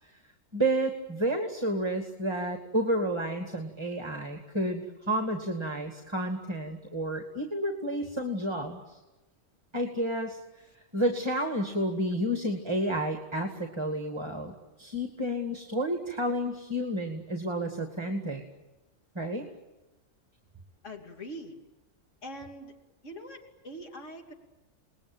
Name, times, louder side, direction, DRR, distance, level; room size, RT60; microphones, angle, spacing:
voice 1, 0.5-9.0 9.7-10.4 10.9-18.4 19.1-19.5, right 1 dB, 20° right, 4 dB, 2.3 m, -30 dB
voice 2, 20.8-21.6 22.2-22.7 23.0-24.3, equal, 65° left, 2 dB, 3.4 m, -43 dB
29.0 x 20.5 x 9.1 m, 1.1 s
omnidirectional pair, 1.3 m